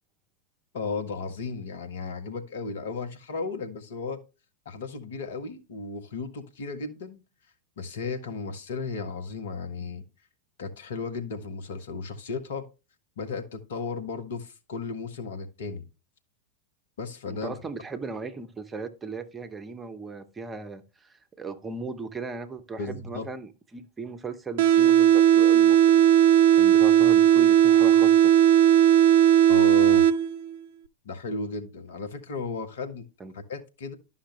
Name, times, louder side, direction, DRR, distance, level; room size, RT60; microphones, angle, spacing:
voice 1, 0.7-4.2 4.6-7.2 7.8-10.0 10.6-12.7 13.2-15.8 17.0-17.5 22.8-23.3 29.5-30.1 31.0-33.1 33.3-34.0, left 4 dB, 60° left, 1.1 m, -34 dB
voice 2, 17.3-26.0 26.5-28.3 33.2-33.3, right 4 dB, 15° right, 0.9 m, -37 dB
sound 1, 24.6-30.6, right 10 dB, 55° right, 0.5 m, -17 dB
11.5 x 5.6 x 3.2 m
figure-of-eight pair, 90°, 0 cm